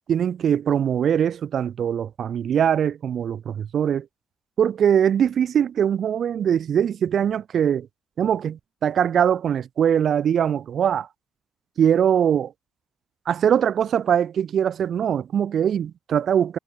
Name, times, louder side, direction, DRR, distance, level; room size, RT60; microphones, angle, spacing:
voice 1, 0.1-4.1 4.6-7.9 8.2-11.1 11.8-12.5 13.3-16.6, right 8 dB, 60° right, 6.9 m, -22 dB
cardioid pair, 90°, 0 cm